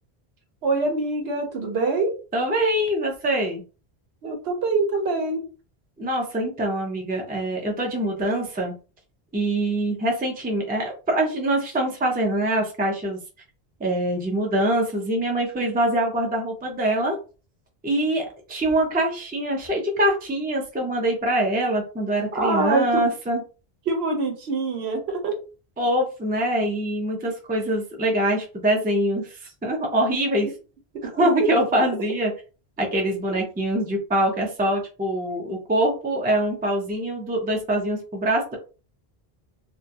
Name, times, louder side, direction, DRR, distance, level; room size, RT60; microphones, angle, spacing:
voice 1, 0.6-2.1 4.2-5.4 22.3-23.1 23.9-25.4 31.2-31.3 31.7-31.8, right 3 dB, 75° right, 4 dB, 0.9 m, -24 dB
voice 2, 2.3-3.6 6.0-8.7 9.3-13.2 13.8-17.2 17.8-23.4 25.8-30.5 31.2-32.3 32.8-38.6, right 1 dB, 15° right, 1 dB, 0.3 m, -24 dB
2.4 x 2.2 x 2.7 m, 0.35 s
omnidirectional pair, 1.1 m